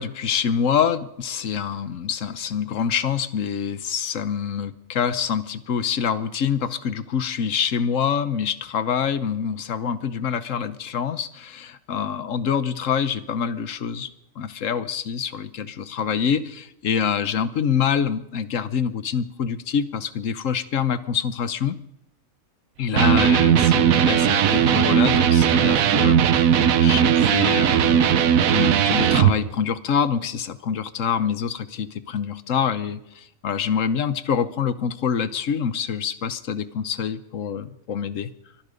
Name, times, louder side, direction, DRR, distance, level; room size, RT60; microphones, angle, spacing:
voice 1, 0.0-14.1 14.4-21.8 22.8-38.3, left 7 dB, 70° left, 14 dB, 1.3 m, -26 dB
Electric guitar, 22.9-29.4, right 9 dB, 85° right, 1.3 m, -18 dB
23.5 x 10.5 x 5.1 m, 0.82 s
omnidirectional pair, 1.4 m